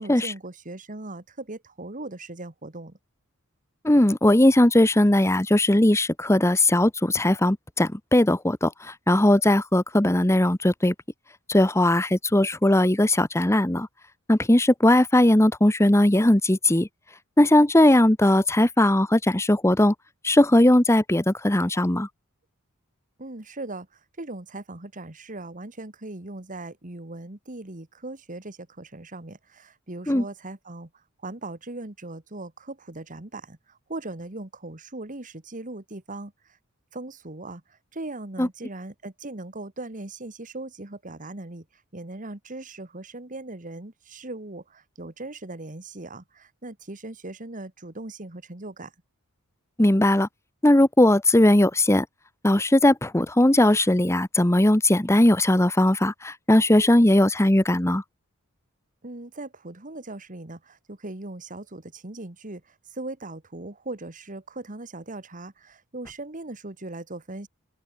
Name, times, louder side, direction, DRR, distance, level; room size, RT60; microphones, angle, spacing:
voice 1, 0.0-3.0 23.2-30.9 31.2-36.6 36.9-41.7 41.9-48.9 59.0-67.5, right 2 dB, 35° right, 1.8 m, -39 dB
voice 2, 3.8-10.9 11.5-13.9 14.3-16.9 17.4-19.9 20.2-22.1 30.1-30.2 38.4-38.5 49.8-50.3 50.6-52.1 52.4-58.0, left 1 dB, 15° left, 1.0 m, -19 dB
open air
head